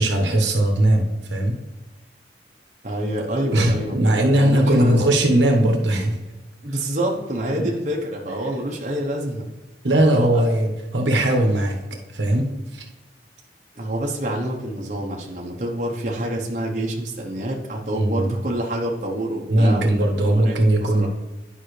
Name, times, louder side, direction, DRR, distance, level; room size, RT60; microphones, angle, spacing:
voice 1, 0.0-1.6 3.5-6.2 7.6-7.7 9.8-11.8 12.1-12.9 17.9-18.3 19.5-21.1, right 1 dB, 80° right, 2 dB, 1.2 m, -19 dB
voice 2, 2.8-5.0 6.6-9.5 10.1-10.4 13.8-19.9 20.3-21.1, right 1 dB, 40° right, -1 dB, 1.0 m, -27 dB
10.5 x 5.5 x 3.2 m, 1.1 s
head